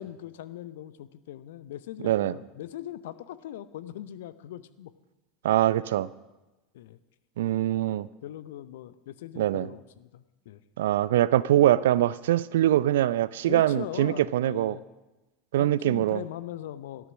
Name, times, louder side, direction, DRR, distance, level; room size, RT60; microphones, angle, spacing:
voice 1, 0.0-4.9 6.7-7.0 8.2-10.6 13.5-14.8 15.6-17.1, left 12 dB, 65° left, 0.7 m, -40 dB
voice 2, 2.0-2.3 5.4-6.1 7.4-8.1 9.4-9.7 10.8-14.8 15.5-16.2, right 13 dB, 65° right, 0.4 m, -23 dB
13.0 x 12.5 x 6.2 m
figure-of-eight pair, 80°, 0 cm